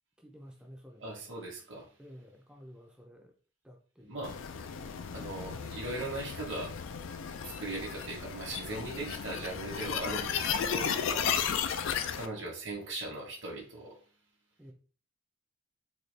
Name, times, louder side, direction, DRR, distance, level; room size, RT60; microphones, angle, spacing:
voice 1, 0.2-1.2 2.0-3.3 3.6-4.4 14.6-14.7, equal, 5° right, 2 dB, 0.4 m, -52 dB
voice 2, 1.0-1.9 4.0-4.4 5.1-6.7 7.4-11.3 12.1-14.0, right 2 dB, 65° right, -3 dB, 1.1 m, -39 dB
sound 1, 4.2-12.3, left 7 dB, 75° left, 0.4 m, -34 dB
4.1 x 2.3 x 3.2 m, 0.41 s
head